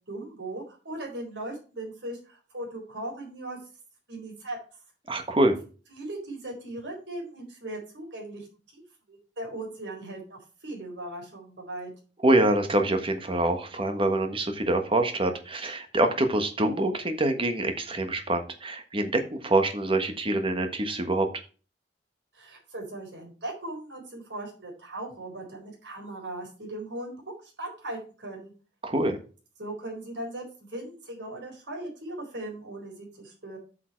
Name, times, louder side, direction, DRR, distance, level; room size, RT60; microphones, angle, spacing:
voice 1, 0.1-3.6 4.1-4.6 5.9-8.5 8.7-8.8 9.1-11.9 22.3-27.2 27.4-28.5 29.6-33.6, right 1 dB, 75° right, 0 dB, 4.2 m, -38 dB
voice 2, 5.1-5.6 12.2-21.3 28.8-29.2, right 1 dB, 30° right, 6 dB, 1.4 m, -25 dB
8.3 x 5.7 x 4.6 m, 0.35 s
head